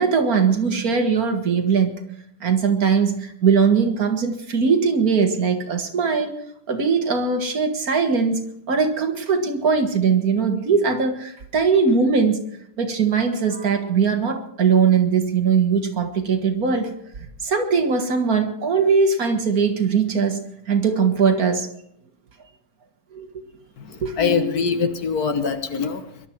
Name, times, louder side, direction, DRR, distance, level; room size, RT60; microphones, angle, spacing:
voice 1, 0.0-2.0 2.4-6.4 6.7-8.4 8.7-12.4 12.8-16.9 17.4-21.7 23.1-23.3 24.0-24.1, right 5 dB, 60° right, 6 dB, 2.0 m, -20 dB
voice 2, 23.8-26.3, left 5 dB, 65° left, 8 dB, 1.7 m, -24 dB
22.0 x 12.0 x 4.6 m, 0.72 s
omnidirectional pair, 1.8 m